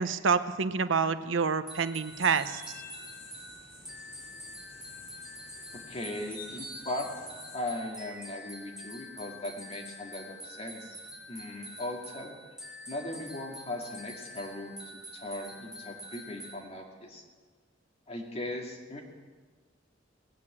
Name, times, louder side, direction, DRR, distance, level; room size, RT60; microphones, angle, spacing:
voice 1, 0.0-2.8, right 5 dB, 90° right, 12 dB, 0.7 m, -28 dB
sound 1, 1.7-16.6, left 1 dB, 5° right, 1.8 m, -46 dB
sound 2, 2.0-7.6, left 2 dB, 50° left, 6.9 m, -49 dB
voice 2, 5.7-7.1 7.5-11.0 11.3-12.3 12.9-17.2 18.1-19.0, left 1 dB, 35° left, 0 dB, 2.3 m, -38 dB
18.5 x 8.6 x 8.6 m, 1.4 s
head